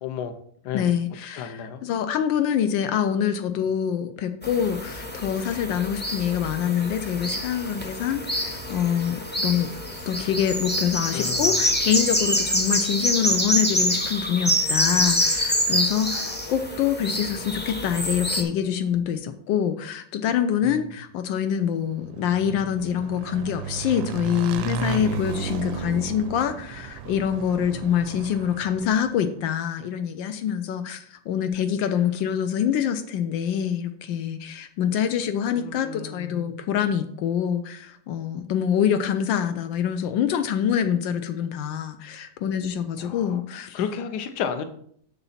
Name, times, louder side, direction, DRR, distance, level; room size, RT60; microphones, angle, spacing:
voice 1, 0.0-0.4 0.6-0.8 1.4-1.8 11.1-11.7 16.1-16.3 35.6-36.5 43.0-43.2 43.7-44.6, left 7 dB, 65° left, 8 dB, 1.3 m, -32 dB
voice 2, 0.7-9.7 10.1-43.8, left 8 dB, 85° left, 8 dB, 1.4 m, -25 dB
sound 1, 4.4-18.4, equal, 15° left, 0.3 m, -26 dB
Motorcycle / Engine, 21.9-29.3, right 6 dB, 85° right, 1.3 m, -34 dB
7.0 x 6.9 x 4.2 m, 0.62 s
omnidirectional pair, 2.0 m